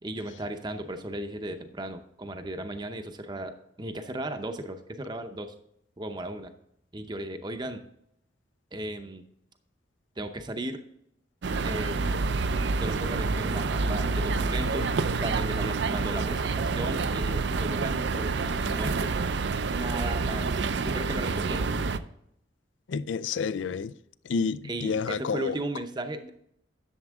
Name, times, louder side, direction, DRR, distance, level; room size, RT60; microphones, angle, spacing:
voice 1, 0.0-5.5 6.0-6.5 6.9-7.8 8.7-9.2 10.2-10.8 11.6-12.0 12.8-14.9 15.2-19.1 19.7-21.7 24.6-26.3, right 1 dB, 25° right, 0.7 m, -36 dB
sound 1, 11.4-22.0, right 4 dB, 65° right, 0.5 m, -28 dB
voice 2, 22.9-23.9 24.3-25.5, left 5 dB, 75° left, 0.4 m, -29 dB
11.0 x 7.2 x 3.6 m
head